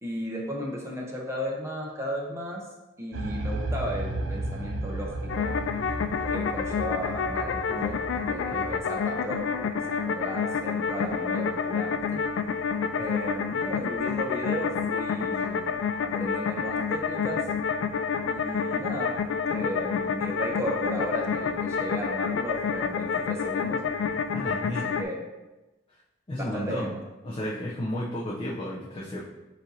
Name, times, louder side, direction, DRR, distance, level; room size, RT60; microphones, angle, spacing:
voice 1, 0.0-2.6 3.0-5.5 6.3-12.2 13.0-17.4 18.3-19.2 19.5-23.8 24.8-25.3 26.4-27.0, equal, 15° right, -1 dB, 0.7 m, -35 dB
sound 1, 3.1-8.9, right 2 dB, 75° right, 0.4 m, -34 dB
sound 2, 5.3-25.0, left 6 dB, 85° left, 0.3 m, -29 dB
voice 2, 24.3-25.0 26.3-27.0 27.2-29.2, left 1 dB, 30° left, -6 dB, 0.5 m, -33 dB
7.3 x 2.7 x 2.7 m, 1.1 s
head